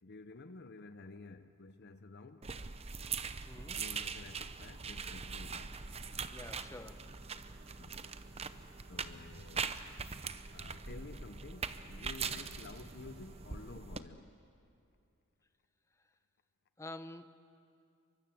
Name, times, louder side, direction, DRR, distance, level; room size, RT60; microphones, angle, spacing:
voice 1, 0.0-2.5 3.8-5.8 7.8-8.2 8.9-9.8 10.5-14.3, left 3 dB, 50° left, 0.7 m, -52 dB
sound 1, 2.4-14.0, right 5 dB, 30° right, 0.8 m, -42 dB
voice 2, 3.5-3.9 6.3-7.1 16.8-17.3, left 2 dB, 15° left, 0.9 m, -48 dB
sound 2, 4.8-13.8, right 2 dB, 75° right, 1.3 m, -62 dB
29.5 x 24.0 x 7.7 m
head